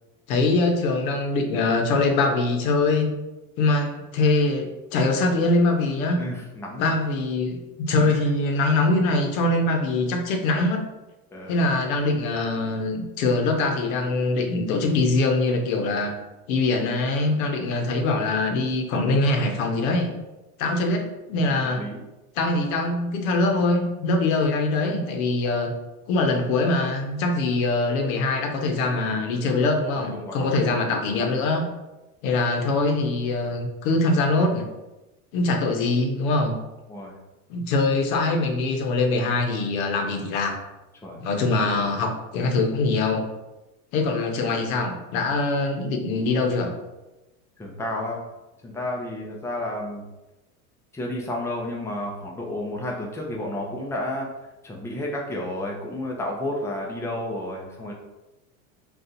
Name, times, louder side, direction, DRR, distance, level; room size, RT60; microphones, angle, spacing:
voice 1, 0.3-3.1 3.6-6.2 6.8-10.8 11.5-16.1 16.5-20.1 20.6-21.8 22.4-25.7 26.1-31.7 32.2-34.7 35.3-36.6 37.5-40.6 41.2-43.3 43.9-46.7, left 2 dB, 80° left, 3 dB, 0.8 m, -23 dB
voice 2, 6.2-6.9 8.0-8.3 11.3-11.7 21.8-22.0 30.1-30.8 36.9-37.1 41.0-41.2 47.6-48.2 48.6-50.0 50.9-54.3 54.6-57.9, left 1 dB, 5° left, -2 dB, 0.5 m, -31 dB
2.6 x 2.4 x 4.0 m, 1.0 s
supercardioid pair, 125°, 42 cm